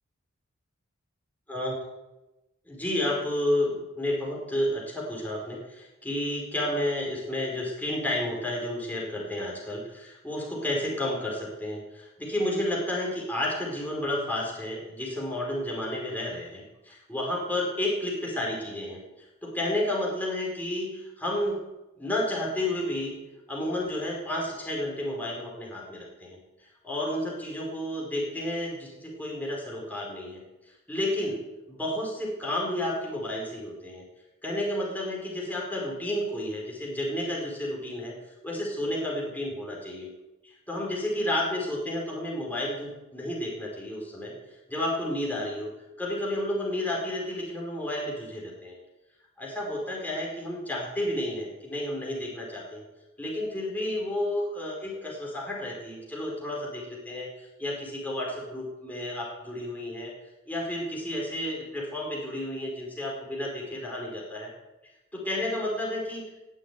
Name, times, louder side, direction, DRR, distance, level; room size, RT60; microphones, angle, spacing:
voice 1, 2.7-21.6 22.0-23.1 23.5-26.4 26.8-30.4 30.9-31.4 31.7-34.0 34.4-38.1 38.4-40.1 40.4-44.3 44.7-45.7 46.0-48.8 49.4-52.8 53.2-60.1 60.5-64.5 65.1-66.4, left 1 dB, 10° left, -3 dB, 5.0 m, -31 dB
19.0 x 7.5 x 9.5 m, 1.0 s
head